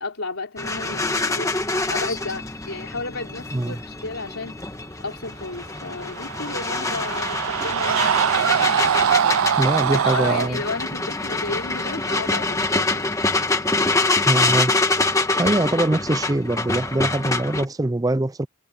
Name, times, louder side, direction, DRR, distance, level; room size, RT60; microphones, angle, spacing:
voice 1, 0.0-4.6 5.0-8.6 10.0-13.1, left 3 dB, 80° left, 3.6 m, -33 dB
sound 1, 0.6-17.7, left 3 dB, 15° left, 1.3 m, -25 dB
sound 2, 6.0-10.5, right 8 dB, 80° right, 0.4 m, -22 dB
voice 2, 9.6-10.6 14.3-14.7 15.4-18.5, right 1 dB, 15° right, 0.4 m, -23 dB
head